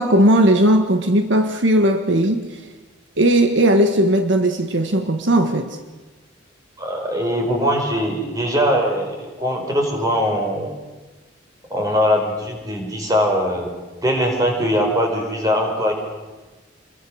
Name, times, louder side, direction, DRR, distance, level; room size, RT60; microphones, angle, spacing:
voice 1, 0.0-2.7 3.2-5.8, right 1 dB, 70° right, 6 dB, 1.6 m, -17 dB
voice 2, 6.8-10.7 11.7-13.7 14.0-15.9, equal, 20° right, 2 dB, 4.8 m, -21 dB
28.0 x 22.0 x 6.4 m, 1.2 s
head